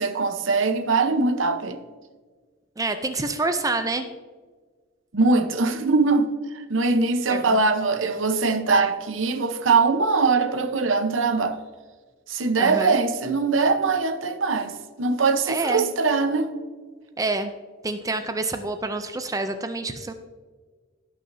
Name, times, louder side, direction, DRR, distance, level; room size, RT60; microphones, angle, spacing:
voice 1, 0.0-1.8 5.1-11.6 12.3-16.5, right 4 dB, 75° right, 0.9 m, -22 dB
voice 2, 2.8-4.1 7.3-7.6 12.6-13.0 15.5-15.9 17.2-17.5 17.8-20.1, right 3 dB, 20° right, 0.5 m, -27 dB
16.5 x 6.3 x 2.7 m
head